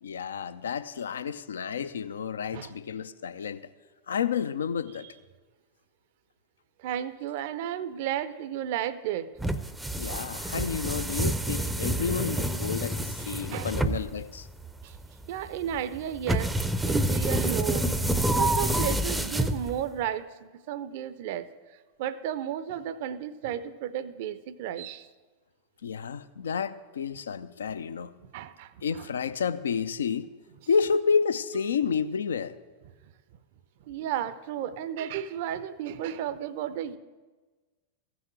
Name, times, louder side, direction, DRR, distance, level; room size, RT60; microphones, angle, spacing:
voice 1, 0.0-3.7 4.1-5.1 10.0-14.5 25.8-28.2 28.8-30.3 30.7-32.6, left 6 dB, 65° left, 0.5 m, -30 dB
voice 2, 6.8-9.3 13.5-13.7 14.8-15.0 15.3-16.5 16.8-17.9 18.3-21.5 22.0-25.1 28.3-29.1 33.9-37.0, right 10 dB, 50° right, 0.6 m, -33 dB
sound 1, 9.4-20.0, right 1 dB, 5° right, 0.6 m, -28 dB
15.0 x 6.2 x 7.8 m
figure-of-eight pair, 90°, 0 cm